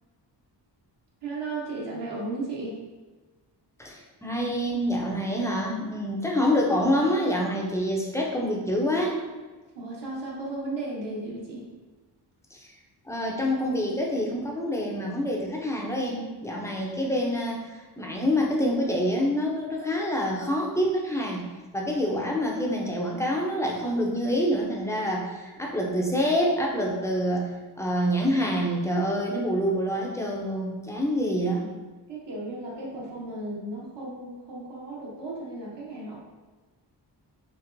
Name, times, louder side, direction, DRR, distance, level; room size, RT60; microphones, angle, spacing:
voice 1, 1.2-2.8 9.7-11.7 32.1-36.2, right 2 dB, 75° right, -4 dB, 1.0 m, -35 dB
voice 2, 3.8-9.2 12.5-12.7 13.1-21.5 21.7-27.5 27.8-31.6, equal, 5° left, -2 dB, 0.4 m, -26 dB
4.4 x 2.9 x 2.5 m, 1.3 s
wide cardioid pair, 170°, 43 cm